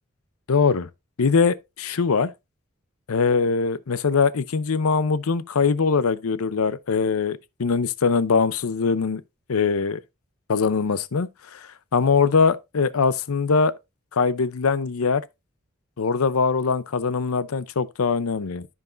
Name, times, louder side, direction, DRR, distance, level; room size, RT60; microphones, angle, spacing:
voice 1, 0.5-0.9 1.2-2.3 3.1-9.2 9.5-10.0 10.5-13.7 14.1-15.2 16.0-18.7, left 5 dB, 90° left, 0.6 m, -22 dB
13.5 x 4.7 x 2.5 m
head